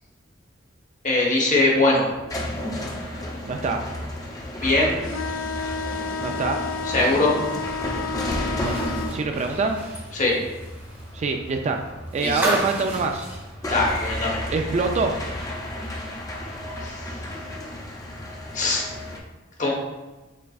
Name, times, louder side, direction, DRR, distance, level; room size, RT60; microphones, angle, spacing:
voice 1, 1.0-2.1 4.6-5.0 6.9-7.3 10.1-10.4 12.2-12.5 13.7-14.4 16.8-16.9 18.5-18.9 19.6-19.7, left 2 dB, 40° left, -2 dB, 1.0 m, -21 dB
sound 1, 1.9-19.2, left 1 dB, 20° left, 0.5 m, -33 dB
voice 2, 3.5-3.8 6.2-6.6 8.6-9.8 11.1-11.8 12.1-13.3 14.5-15.2, right 4 dB, 35° right, 4 dB, 0.3 m, -25 dB
sound 2, 5.0-9.2, left 4 dB, 75° left, 0.3 m, -31 dB
sound 3, 8.4-14.5 14.8-14.9 16.3-16.4, right 1 dB, 10° right, 0.8 m, -34 dB
5.5 x 3.6 x 2.3 m, 1.1 s
head